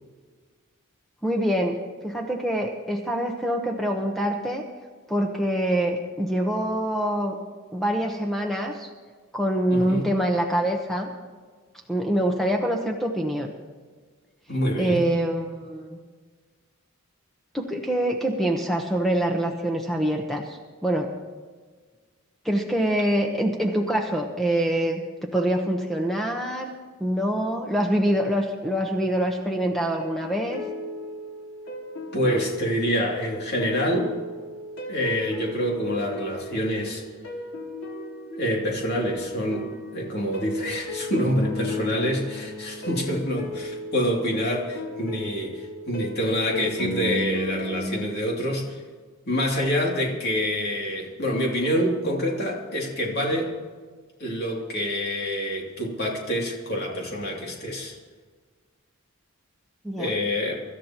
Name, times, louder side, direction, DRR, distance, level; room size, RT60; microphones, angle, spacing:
voice 1, 1.2-4.7 5.1-7.4 7.7-8.9 9.3-11.1 11.9-13.5 14.8-16.0 17.5-21.1 22.4-26.7 27.0-30.6 59.8-60.1, right 1 dB, ahead, 1 dB, 1.0 m, -25 dB
voice 2, 9.7-10.1 14.5-15.0 32.1-34.1 34.9-37.0 38.3-48.8 49.3-53.5 54.2-57.9 60.0-60.6, equal, 50° left, -1 dB, 2.8 m, -26 dB
sound 1, 30.0-47.9, left 1 dB, 80° left, 3.0 m, -35 dB
25.5 x 13.0 x 3.0 m, 1.5 s
head